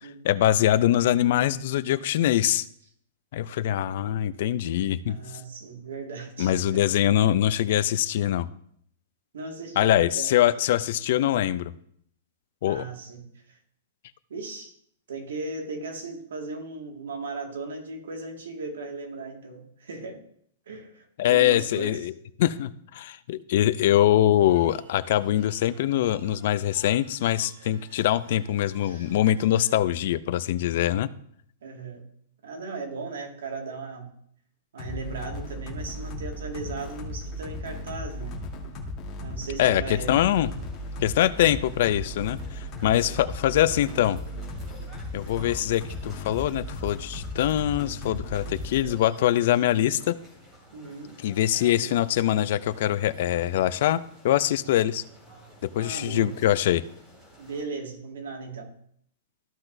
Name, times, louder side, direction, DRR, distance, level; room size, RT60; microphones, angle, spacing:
voice 1, 0.0-2.7 3.3-5.2 6.4-8.5 9.8-11.7 12.6-12.8 21.2-31.1 39.6-40.5 41.0-44.2 45.1-50.2 51.2-55.0 55.6-56.8, left 12 dB, 45° left, 16 dB, 0.4 m, -23 dB
voice 2, 5.1-6.8 9.3-10.4 12.7-13.3 14.3-14.7 15.1-20.2 20.7-22.0 28.8-29.1 31.6-32.0 32.4-34.1 34.7-38.4 39.2-40.2 42.9-43.2 50.7-51.1 51.5-51.9 55.8-56.3 57.4-58.7, right 3 dB, 90° right, 2 dB, 1.9 m, -37 dB
sound 1, 24.4-29.7, right 3 dB, 60° right, 2.2 m, -54 dB
sound 2, 34.8-48.9, left 1 dB, 20° left, 1.4 m, -36 dB
sound 3, 39.9-57.6, equal, 20° right, 2.5 m, -52 dB
14.0 x 5.9 x 2.6 m, 0.67 s
supercardioid pair, 170°, 0 cm